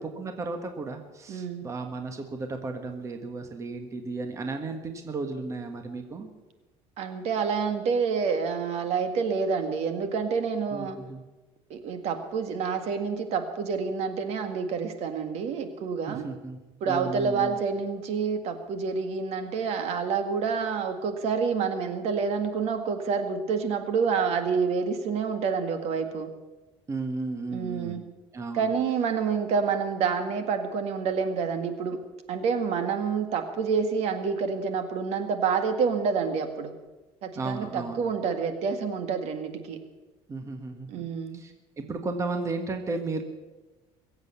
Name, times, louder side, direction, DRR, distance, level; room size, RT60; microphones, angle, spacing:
voice 1, 0.0-6.3 10.7-11.2 16.1-17.6 26.9-28.0 28.3-28.7 37.3-38.0 40.3-41.1 41.3-43.2, right 3 dB, 25° right, 6 dB, 1.5 m, -34 dB
voice 2, 1.3-1.7 7.0-11.0 11.7-16.3 16.8-26.3 27.5-28.0 28.5-32.0 32.3-36.7 37.2-39.8 40.9-41.4, right 5 dB, 60° right, 8 dB, 1.8 m, -28 dB
22.0 x 8.1 x 8.2 m, 1.2 s
cardioid pair, 140°, 12 cm